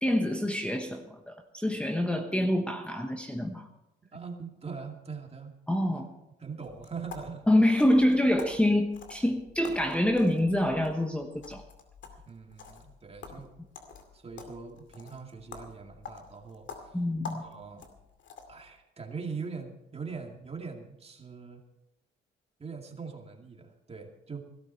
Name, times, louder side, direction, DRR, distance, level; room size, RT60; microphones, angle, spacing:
voice 1, 0.0-3.7 5.7-6.1 7.5-11.6 16.9-17.4, left 1 dB, 5° left, 5 dB, 1.1 m, -26 dB
voice 2, 4.1-5.6 6.4-7.5 12.3-13.5 14.1-17.0 17.4-17.9 18.5-21.6 22.6-24.4, right 5 dB, 30° right, 3 dB, 2.4 m, -42 dB
sound 1, 6.6-18.7, left 5 dB, 70° left, 2.4 m, -48 dB
16.0 x 13.0 x 4.5 m, 0.91 s
cardioid pair, 90°, 20 cm